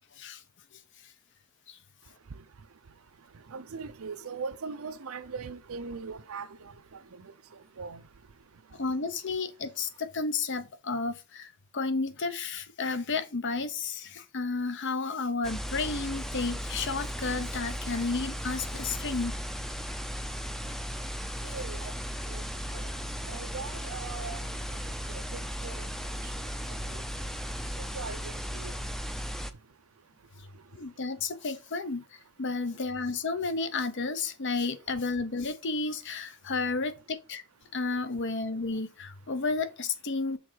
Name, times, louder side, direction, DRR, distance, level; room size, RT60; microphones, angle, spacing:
voice 1, 3.5-6.7 7.2-7.3 7.8-8.0 21.5-21.9 22.3-22.4 22.7-22.9 23.3-24.5 25.3-25.9 26.9-27.0 27.9-28.7, right 5 dB, 85° right, 0.6 m, -40 dB
voice 2, 8.8-19.4 30.7-32.0 32.4-37.4 37.7-40.4, left 4 dB, 60° left, 0.8 m, -32 dB
sound 1, 15.4-29.5, equal, ahead, 0.5 m, -36 dB
6.3 x 3.8 x 4.6 m
head